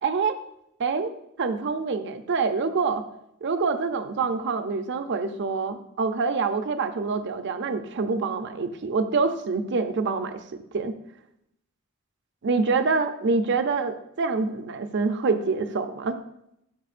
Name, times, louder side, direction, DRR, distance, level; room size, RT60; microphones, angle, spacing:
voice 1, 0.0-0.4 0.8-1.1 1.4-3.0 3.4-10.4 10.7-10.9 12.4-16.2, right 4 dB, 55° right, 9 dB, 0.6 m, -26 dB
11.5 x 5.0 x 2.5 m, 0.78 s
head